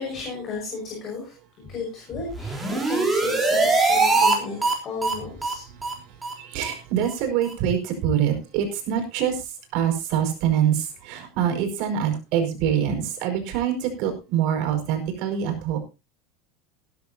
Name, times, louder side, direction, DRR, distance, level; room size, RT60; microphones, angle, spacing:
voice 1, 0.0-1.3 1.7-4.6 4.8-5.7, left 4 dB, 30° left, -1 dB, 5.6 m, -34 dB
sound 1, 2.3-4.3 4.6-4.7 5.0-5.1 5.4-5.5 5.8-5.9 6.2-6.3 6.6-6.7 7.0-7.1 7.4-7.5, right 3 dB, 10° right, 3.7 m, -22 dB
voice 2, 5.7-15.8, right 9 dB, 55° right, 4 dB, 5.1 m, -25 dB
18.0 x 11.5 x 2.8 m, 0.29 s
supercardioid pair, 160°, 0 cm